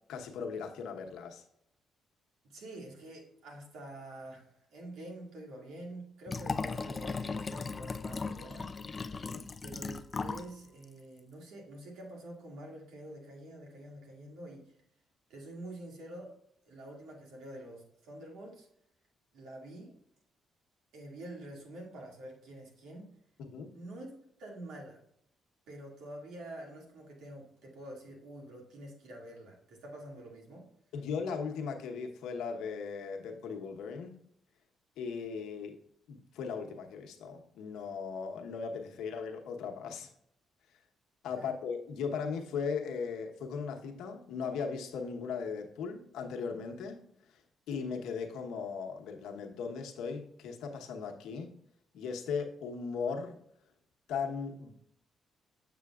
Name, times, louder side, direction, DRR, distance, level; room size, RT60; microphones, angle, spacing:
voice 1, 0.1-1.4 9.1-9.5 23.4-23.7 30.9-34.1 35.0-35.8 36.1-40.1 41.2-47.0 47.7-51.5 51.9-53.4 54.1-54.7, left 5 dB, 85° left, 3 dB, 1.0 m, -38 dB
voice 2, 2.4-8.7 9.6-14.6 15.3-16.3 16.6-18.7 19.3-19.9 20.9-23.1 23.7-24.1 24.4-25.0 25.7-30.7 41.4-41.5, right 1 dB, 85° right, 0 dB, 2.1 m, -47 dB
Liquid, 6.3-10.5 10.8-10.9, left 4 dB, 30° left, 0.3 m, -37 dB
7.7 x 6.7 x 2.4 m, 0.71 s
cardioid pair, 90°, 0 cm